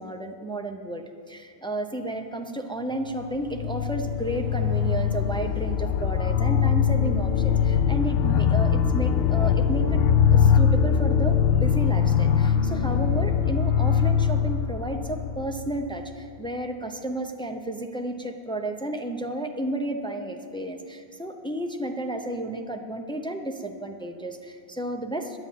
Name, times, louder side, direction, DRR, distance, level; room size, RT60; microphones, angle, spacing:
voice 1, 0.0-10.0 10.3-25.4, right 1 dB, 5° left, 4 dB, 0.5 m, -32 dB
sound 1, 3.2-16.0, left 8 dB, 70° left, 0.8 m, -22 dB
11.0 x 8.6 x 7.4 m, 2.2 s
omnidirectional pair, 1.1 m